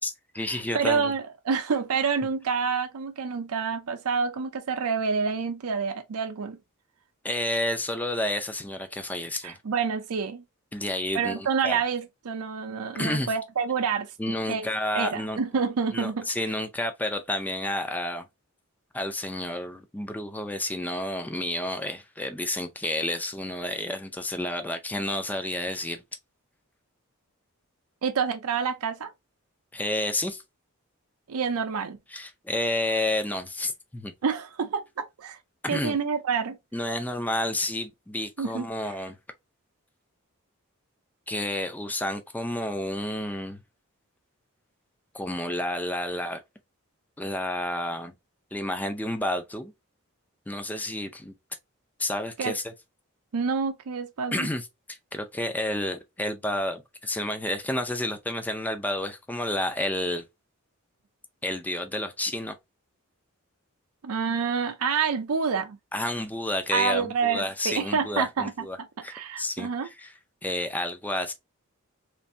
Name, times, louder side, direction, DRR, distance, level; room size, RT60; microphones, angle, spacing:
voice 1, 0.0-1.1 7.2-9.5 10.7-11.8 12.9-13.3 14.2-15.4 15.9-18.3 18.9-26.0 29.7-30.4 32.1-34.1 35.6-36.0 36.7-39.2 41.3-43.6 45.1-46.4 47.2-48.1 48.5-49.7 50.5-51.3 52.0-52.6 54.3-60.2 61.4-62.5 65.9-70.1 70.4-71.3, left 1 dB, 5° left, 0.4 m, -30 dB
voice 2, 0.7-6.6 9.4-10.4 11.1-14.7 14.9-16.3 28.0-29.1 31.3-32.0 34.2-35.4 35.7-36.6 38.4-38.6 52.4-52.5 53.3-54.5 64.0-65.8 66.7-68.7 69.1-69.9, right 5 dB, 85° right, 0.5 m, -28 dB
3.2 x 2.6 x 2.6 m
head